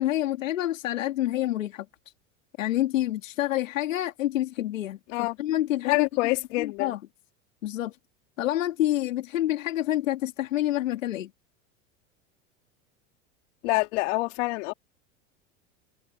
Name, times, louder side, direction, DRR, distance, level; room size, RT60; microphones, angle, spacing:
voice 1, 0.0-1.9 2.6-6.1 6.6-7.0 7.6-8.0 8.4-11.3, left 14 dB, 85° left, 2.1 m, -27 dB
voice 2, 5.8-6.9 13.6-14.7, left 24 dB, 70° left, 3.2 m, -26 dB
hypercardioid pair, 95°, 38 cm